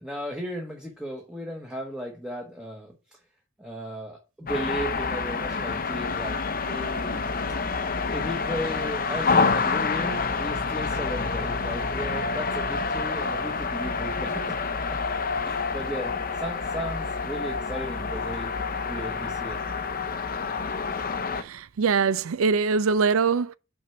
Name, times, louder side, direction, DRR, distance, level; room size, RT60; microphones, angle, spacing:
voice 1, 0.0-2.9 3.6-7.3 8.1-14.6 14.9-15.0 15.4-18.5 18.8-19.6, equal, 5° right, 1.0 m, -35 dB
sound 1, 4.5-21.4, left 4 dB, 45° left, 0.6 m, -28 dB
voice 2, 21.4-23.6, right 5 dB, 85° right, 0.5 m, -23 dB
6.1 x 4.5 x 5.8 m
head